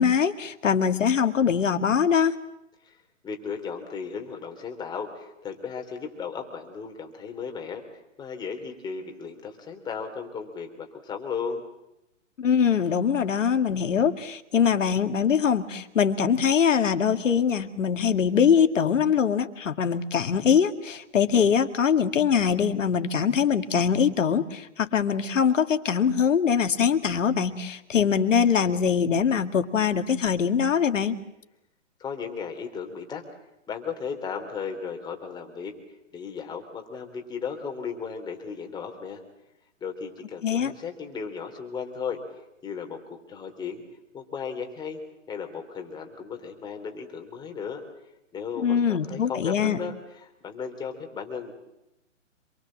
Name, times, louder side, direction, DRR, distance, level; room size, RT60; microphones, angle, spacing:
voice 1, 0.0-2.4 12.4-31.2 40.4-40.7 48.6-49.8, left 7 dB, 75° left, 8 dB, 2.2 m, -23 dB
voice 2, 3.2-7.8 8.2-11.6 32.0-33.2 33.7-35.7 36.1-39.2 39.8-42.2 42.6-43.8 44.1-45.0 45.3-47.8 48.3-49.9 50.2-51.5, left 6 dB, 10° left, 3 dB, 3.4 m, -35 dB
27.0 x 23.0 x 7.6 m, 0.89 s
hypercardioid pair, 150°, 38 cm